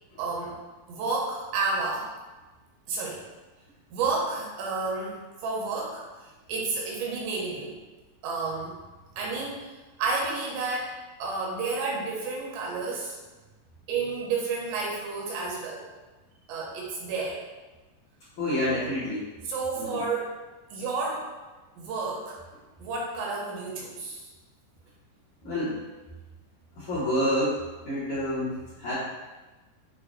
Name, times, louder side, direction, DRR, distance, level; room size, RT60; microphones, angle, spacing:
voice 1, 0.2-0.6 0.9-2.1 2.9-3.2 3.9-7.8 8.2-8.8 9.2-9.7 10.0-10.9 11.2-13.2 13.9-15.9 16.5-17.4 19.4-20.4 20.7-21.3 21.8-22.4 22.8-24.3, right 4 dB, 80° right, -2 dB, 2.7 m, -31 dB
voice 2, 18.4-19.3 19.8-20.0 25.4-25.8 26.8-28.9, left 1 dB, 65° left, -12 dB, 1.9 m, -28 dB
7.5 x 2.5 x 2.5 m, 1.2 s
omnidirectional pair, 5.1 m